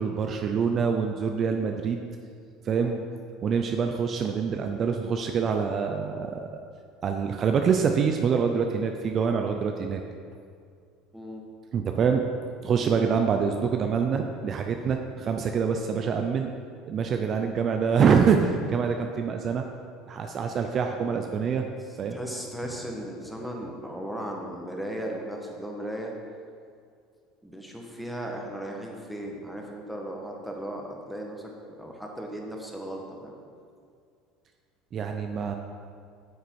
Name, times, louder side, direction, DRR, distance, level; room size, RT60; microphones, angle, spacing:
voice 1, 0.0-2.0 2.6-2.9 3.4-6.5 7.0-10.0 11.7-12.2 12.6-16.5 16.9-19.6 20.1-21.7 22.0-22.2 34.9-35.5, right 6 dB, 40° right, 4 dB, 0.5 m, -25 dB
voice 2, 2.7-3.1 11.1-11.4 22.1-26.1 27.4-31.5 31.8-33.4, right 1 dB, ahead, 0 dB, 1.4 m, -36 dB
8.4 x 6.8 x 4.7 m, 2.2 s
supercardioid pair, 110°, 0 cm